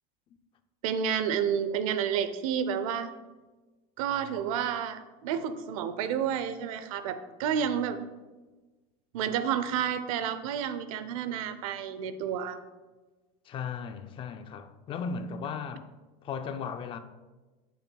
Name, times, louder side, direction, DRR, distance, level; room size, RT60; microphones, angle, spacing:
voice 1, 0.8-3.1 4.0-8.0 9.1-12.6, right 8 dB, 90° right, 0.7 m, -30 dB
voice 2, 13.5-15.9 16.2-17.0, left 6 dB, 30° left, 0.5 m, -36 dB
8.9 x 8.3 x 2.3 m
cardioid pair, 150°, 18 cm